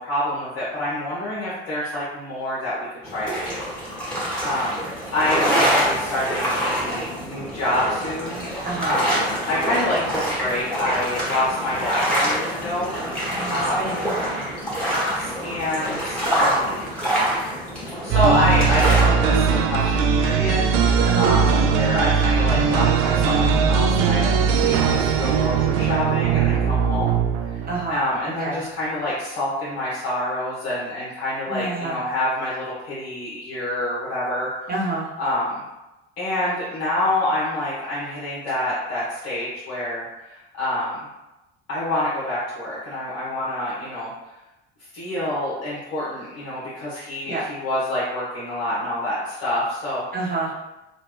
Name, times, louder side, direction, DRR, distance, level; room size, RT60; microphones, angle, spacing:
voice 1, 0.0-3.7 4.4-4.8 5.1-12.9 13.5-13.9 14.8-16.8 18.0-27.6 27.9-34.7 35.2-35.6 36.2-41.1 41.7-44.1 44.9-50.0, left 1 dB, 65° left, -9 dB, 1.0 m, -27 dB
sound 1, 3.0-19.0, equal, 5° left, 1.4 m, -26 dB
voice 2, 8.6-9.0 13.3-14.4 21.0-21.4 27.6-28.0 28.4-28.6 31.5-32.0 34.7-35.1 47.3-47.4 50.1-50.5, right 2 dB, 30° right, -3 dB, 1.0 m, -28 dB
sound 2, 18.1-27.9, right 6 dB, 50° right, 0.4 m, -19 dB
3.2 x 2.4 x 2.9 m, 0.99 s
figure-of-eight pair, 65°, 31 cm